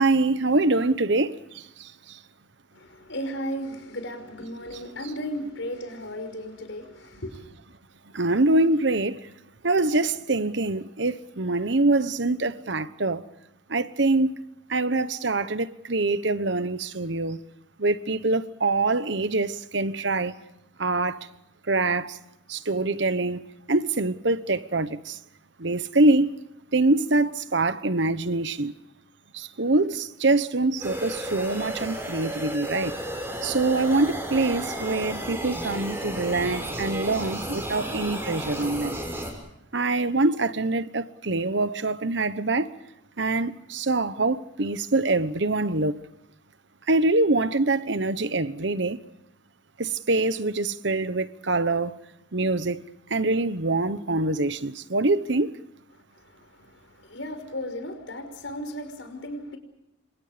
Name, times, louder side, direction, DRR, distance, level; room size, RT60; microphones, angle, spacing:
voice 1, 0.0-2.2 8.1-9.3 9.6-13.3 13.7-14.4 14.7-17.4 17.8-20.4 20.8-21.2 21.7-22.2 22.5-23.4 23.7-25.2 25.6-26.4 26.7-28.8 29.3-33.0 33.4-39.0 39.7-42.7 43.2-46.1 46.9-49.0 49.8-52.0 52.3-52.8 53.1-55.6, right 2 dB, 65° right, 1.1 m, -24 dB
voice 2, 2.7-7.5 55.9-59.6, equal, 70° left, 5.6 m, -35 dB
sound 1, 30.8-39.3, right 1 dB, 10° right, 6.4 m, -33 dB
29.5 x 26.0 x 5.1 m
head